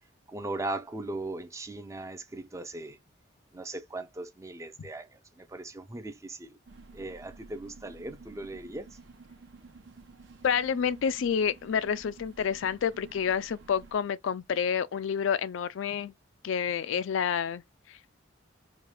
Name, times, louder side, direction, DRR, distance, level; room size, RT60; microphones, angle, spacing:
voice 1, 0.3-3.0 3.5-6.6 6.9-8.9, right 2 dB, 15° right, 0.4 m, -38 dB
sound 1, 6.7-14.0, right 3 dB, 70° right, 0.9 m, -52 dB
voice 2, 10.4-16.1 16.4-17.6 17.9-18.0, left 7 dB, 75° left, 0.3 m, -29 dB
4.8 x 2.3 x 3.1 m
head